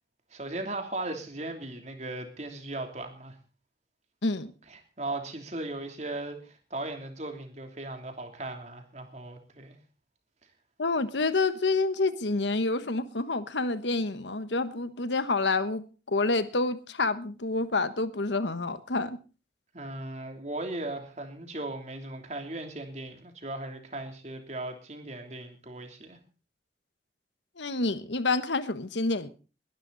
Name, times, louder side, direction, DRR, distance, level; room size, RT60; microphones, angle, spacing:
voice 1, 0.3-3.4 4.7-9.7 19.7-26.2, right 2 dB, 40° right, 3.1 m, -37 dB
voice 2, 10.8-19.2 27.6-29.3, left 3 dB, 90° left, 1.3 m, -28 dB
21.5 x 12.0 x 4.0 m
head